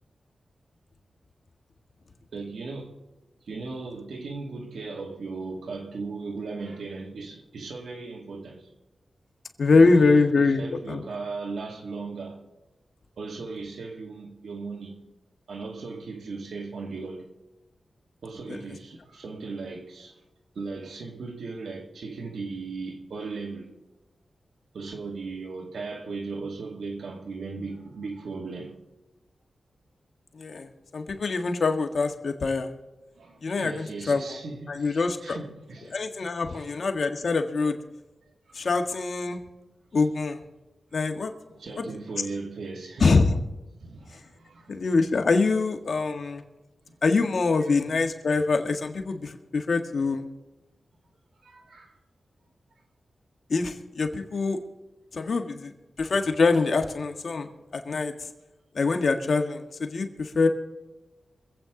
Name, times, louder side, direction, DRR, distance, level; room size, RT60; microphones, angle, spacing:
voice 1, 2.3-2.9 3.5-8.7 9.6-12.4 13.2-15.0 15.5-17.3 18.2-20.2 20.5-23.7 24.7-28.8 33.2-36.0 36.5-36.7 38.5-38.8 41.5-43.4 43.8-44.9 46.9-47.0 47.6-47.8 51.4-52.0, right 3 dB, 85° right, 2.3 m, -37 dB
voice 2, 9.6-11.0 18.5-18.6 30.3-32.7 33.4-34.2 34.7-35.4 35.9-37.8 38.5-39.4 39.9-40.4 40.9-41.3 43.0-43.3 44.7-46.4 47.0-50.2 53.5-54.6 55.1-55.7 56.0-58.1 58.7-60.5, left 4 dB, 65° left, 1.7 m, -24 dB
25.5 x 8.5 x 3.9 m
cardioid pair, 70°, 0 cm